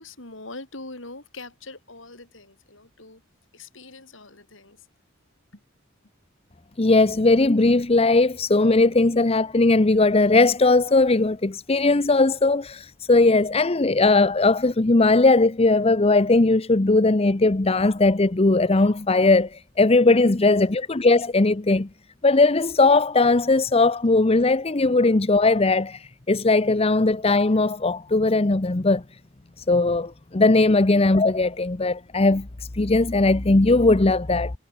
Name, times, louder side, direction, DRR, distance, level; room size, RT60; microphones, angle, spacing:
voice 1, 0.0-3.2 3.5-4.9 5.5-5.6, left 2 dB, 65° left, 7.0 m, -42 dB
voice 2, 6.8-21.9 22.2-29.0 29.6-34.5, left 3 dB, 30° left, 0.8 m, -19 dB
head